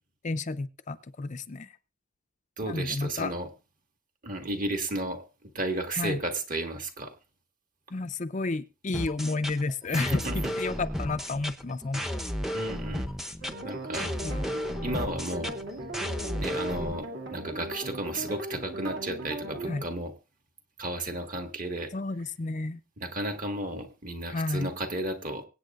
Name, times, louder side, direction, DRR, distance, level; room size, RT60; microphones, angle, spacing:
voice 1, 0.2-1.7 2.7-3.3 5.9-6.2 7.9-12.2 14.0-14.4 19.7-19.8 21.9-22.8 24.3-24.7, left 3 dB, 35° left, 10 dB, 0.5 m, -31 dB
voice 2, 2.6-3.5 4.2-7.1 10.0-10.5 12.5-13.1 13.6-14.1 14.8-15.5 16.4-20.1 20.8-21.9 23.0-25.4, right 1 dB, 40° right, 4 dB, 1.7 m, -33 dB
sound 1, 8.9-16.9, equal, ahead, 0.7 m, -33 dB
sound 2, 13.4-19.9, right 1 dB, 55° right, 2.4 m, -38 dB
24.5 x 8.6 x 2.5 m, 0.31 s
head